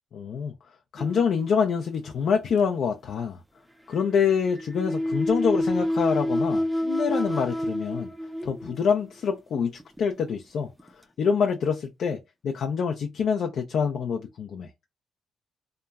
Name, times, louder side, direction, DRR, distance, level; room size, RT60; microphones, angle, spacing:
voice 1, 0.1-0.5 0.9-3.4 3.9-8.1 8.4-9.7 10.0-10.7 11.2-12.2 12.4-14.7, left 6 dB, 70° left, 0.4 m, -26 dB
sound 1, 1.0-2.0 4.0-9.1 9.8-10.0 10.8-10.9, left 1 dB, ahead, 0.4 m, -28 dB
2.8 x 2.2 x 2.3 m
cardioid pair, 95°, 0 cm